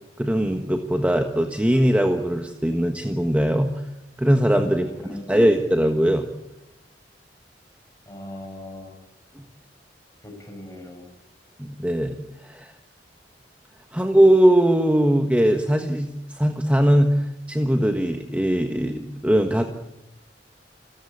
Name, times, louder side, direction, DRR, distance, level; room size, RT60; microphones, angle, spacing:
voice 1, 0.2-3.8 4.2-6.3 9.4-9.5 11.6-12.7 13.9-19.7, right 1 dB, 10° right, 5 dB, 1.4 m, -20 dB
voice 2, 4.7-5.6 8.1-9.0 10.2-11.1, left 1 dB, 15° left, 3 dB, 6.9 m, -40 dB
30.0 x 14.5 x 8.6 m, 0.94 s
head